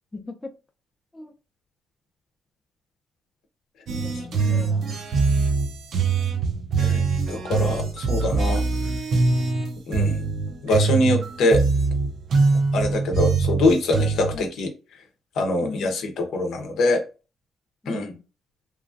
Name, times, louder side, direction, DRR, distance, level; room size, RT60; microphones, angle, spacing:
voice 1, 0.1-0.5 1.1-1.3 3.9-5.5 14.3-14.5 15.6-16.0 17.8-18.2, left 3 dB, 15° left, 0.6 m, -39 dB
sound 1, 3.9-14.4, right 4 dB, 65° right, 0.6 m, -23 dB
voice 2, 6.8-8.6 9.9-10.2 10.6-11.6 12.7-14.7 15.4-17.0 17.9-18.1, left 1 dB, 75° left, 0.7 m, -23 dB
3.0 x 2.5 x 2.5 m
cardioid pair, 90°, 0 cm